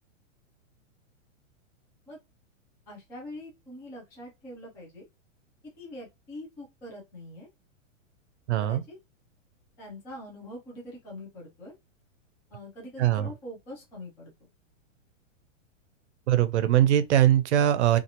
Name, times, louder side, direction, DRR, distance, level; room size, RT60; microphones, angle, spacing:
voice 1, 2.9-5.1 5.8-7.5 8.6-9.0 9.8-11.7 12.5-14.5, left 1 dB, 5° left, 0.4 m, -43 dB
voice 2, 8.5-8.8 13.0-13.3 16.3-18.0, right 11 dB, 60° right, 0.6 m, -21 dB
2.8 x 2.4 x 2.6 m
hypercardioid pair, 160°, 39 cm